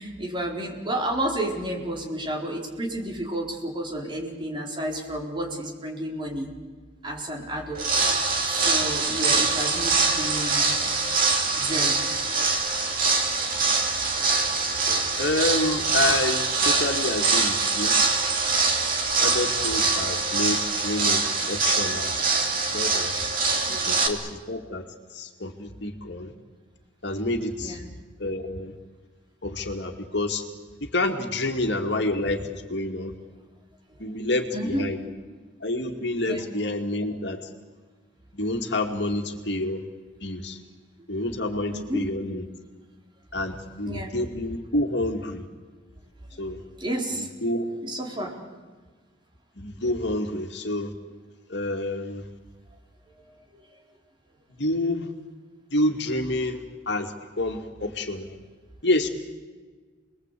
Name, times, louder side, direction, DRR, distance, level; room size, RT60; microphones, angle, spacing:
voice 1, 0.0-6.5 7.0-8.0 8.4-10.7 11.5-12.7 23.7-23.9 27.6-27.9 34.0-34.2 34.5-34.9 36.2-36.4 41.7-42.0 43.8-44.1 46.8-47.3 47.8-48.3 53.5-53.6, right 1 dB, 25° right, 0 dB, 4.5 m, -31 dB
sound 1, 7.7-24.1, right 4 dB, 45° right, 3.0 m, -24 dB
voice 2, 14.9-18.0 19.2-22.1 22.7-23.1 23.9-24.9 25.1-26.3 27.0-27.8 28.2-28.7 29.4-30.4 30.8-33.1 34.0-35.0 35.6-37.4 38.3-39.8 40.2-40.6 41.1-42.4 43.3-45.5 46.4-46.6 47.2-47.7 49.6-50.9 51.5-52.2 54.6-55.1 55.7-58.4 58.8-59.1, left 1 dB, 60° left, 4 dB, 2.4 m, -28 dB
29.5 x 21.5 x 8.5 m, 1.4 s
head